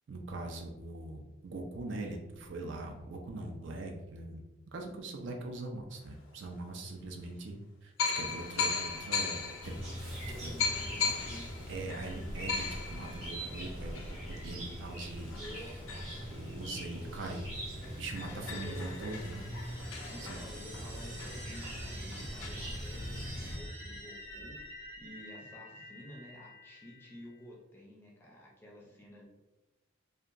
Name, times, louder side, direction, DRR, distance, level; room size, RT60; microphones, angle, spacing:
voice 1, 0.1-7.6 7.8-9.4 9.6-9.9 10.4-10.6 11.7-15.3 16.3-19.5 20.3-20.4, right 2 dB, 65° right, 2 dB, 0.4 m, -42 dB
sound 1, 6.3-6.4 7.2-7.3 8.0-17.1 17.5-17.6 17.8-22.5, left 5 dB, 80° left, 0.4 m, -38 dB
Chirp tweet, 9.6-23.6, equal, 85° right, 1.2 m, -42 dB
voice 2, 10.2-11.5 15.3-15.7 16.9-17.2 17.8-17.9 18.3-18.9 20.1-29.2, equal, 10° left, -3 dB, 0.4 m, -51 dB
sound 2, 18.1-27.4, equal, 30° right, 0.7 m, -48 dB
2.8 x 2.2 x 2.4 m, 1.0 s
head